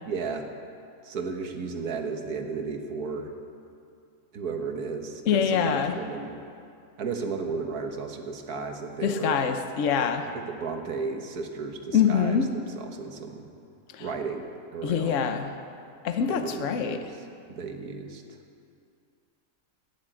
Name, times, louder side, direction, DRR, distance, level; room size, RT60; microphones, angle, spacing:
voice 1, 0.1-0.5 1.0-3.3 4.3-6.4 7.0-9.4 10.3-13.5 14.0-15.3 16.3-18.2, right 4 dB, 85° right, 4 dB, 1.8 m, -34 dB
voice 2, 5.3-6.0 9.0-10.3 11.9-12.5 13.9-14.0 14.8-15.5 16.0-17.0, left 7 dB, 60° left, 7 dB, 1.2 m, -25 dB
12.0 x 10.5 x 8.9 m, 2.5 s
omnidirectional pair, 1.6 m